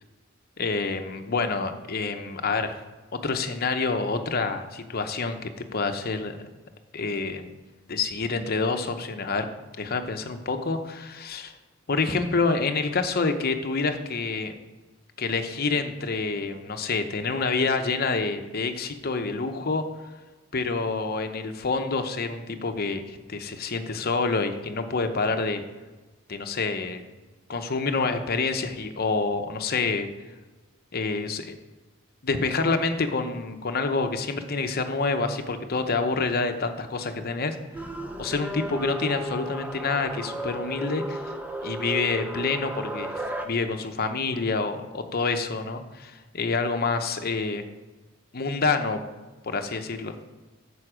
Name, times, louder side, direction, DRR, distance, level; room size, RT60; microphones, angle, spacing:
voice 1, 0.6-2.8 3.2-6.4 6.9-7.5 7.9-9.5 9.8-11.5 11.9-14.5 15.2-19.8 20.5-25.6 26.3-27.0 27.5-30.1 30.9-31.5 32.2-37.9 38.2-41.3 41.6-47.6 48.3-49.0 49.4-50.1, left 4 dB, 45° left, 7 dB, 0.8 m, -27 dB
sound 1, 37.7-43.5, equal, 5° right, 0.6 m, -34 dB
9.3 x 7.0 x 5.0 m, 1.2 s
head